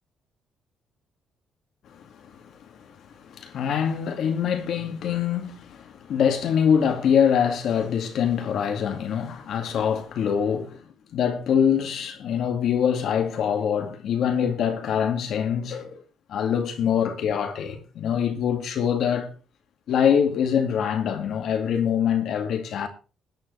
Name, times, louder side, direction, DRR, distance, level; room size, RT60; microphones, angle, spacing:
voice 1, 1.9-2.9 3.2-10.8 11.1-16.0 16.3-19.3 19.9-22.9, left 8 dB, 70° left, 2.2 m, -24 dB
21.0 x 9.1 x 3.4 m
cardioid pair, 90°, 0 cm